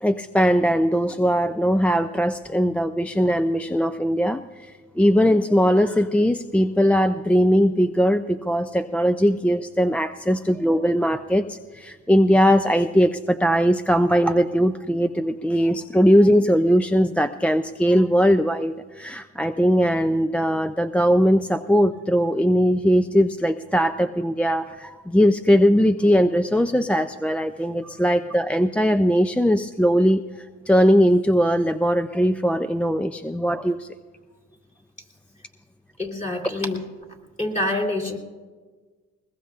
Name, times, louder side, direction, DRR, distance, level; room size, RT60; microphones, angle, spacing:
voice 1, 0.0-33.9, equal, 5° left, 9 dB, 0.3 m, -20 dB
voice 2, 36.0-36.8 37.4-38.2, left 1 dB, 25° left, 2 dB, 2.9 m, -26 dB
21.0 x 20.5 x 2.4 m, 1.4 s
cardioid pair, 90°, 30 cm